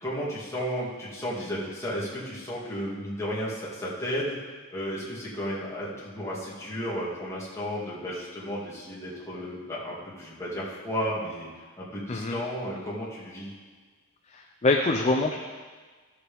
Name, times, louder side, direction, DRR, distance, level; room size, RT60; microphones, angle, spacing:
voice 1, 0.0-4.4 4.7-11.5 11.8-13.5, equal, 15° left, -7 dB, 2.3 m, -33 dB
voice 2, 14.3-15.4, left 2 dB, 30° left, 3 dB, 0.5 m, -25 dB
14.0 x 7.0 x 3.5 m, 1.4 s
head